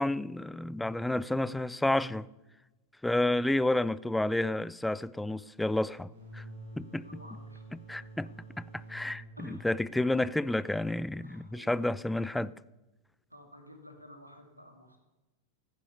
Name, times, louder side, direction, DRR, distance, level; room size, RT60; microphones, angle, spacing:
voice 1, 0.0-2.3 3.0-6.4 6.8-7.0 7.9-8.3 8.6-12.5, left 1 dB, 5° left, 0.4 m, -30 dB
sound 1, 6.1-11.5, equal, 60° right, 5.5 m, -49 dB
voice 2, 7.0-7.6 9.4-9.7 10.0-10.3 11.2-11.9 13.3-15.0, equal, 85° right, 2.5 m, -52 dB
14.5 x 9.9 x 6.7 m
figure-of-eight pair, 90°, 0 cm